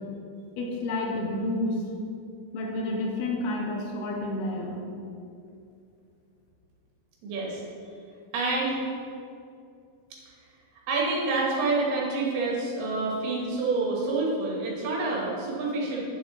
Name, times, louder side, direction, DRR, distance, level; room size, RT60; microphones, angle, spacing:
voice 1, 0.6-1.8 2.5-4.8, left 1 dB, 80° left, 0 dB, 2.8 m, -30 dB
voice 2, 7.2-7.6 8.3-8.8 10.9-16.1, right 3 dB, 80° right, -3 dB, 3.4 m, -27 dB
9.8 x 7.2 x 3.1 m, 2.5 s
omnidirectional pair, 4.6 m